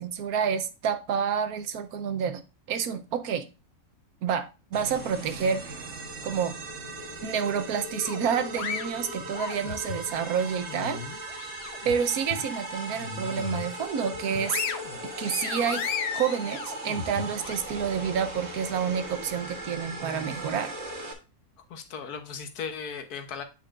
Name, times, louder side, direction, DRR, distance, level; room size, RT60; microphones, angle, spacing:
voice 1, 0.0-2.4 2.7-3.5 4.2-5.8 6.2-6.5 7.2-11.0 11.8-14.6 15.2-20.7, right 7 dB, 80° right, 1.3 m, -29 dB
sound 1, 4.7-21.1, right 1 dB, 50° right, 1.4 m, -38 dB
sound 2, 8.0-10.0 10.5-11.9 12.3-12.5 12.9-13.7 14.1-17.6, left 7 dB, 55° left, 0.8 m, -35 dB
voice 2, 21.7-23.4, left 6 dB, 85° left, 1.5 m, -37 dB
8.3 x 5.4 x 2.5 m
omnidirectional pair, 1.6 m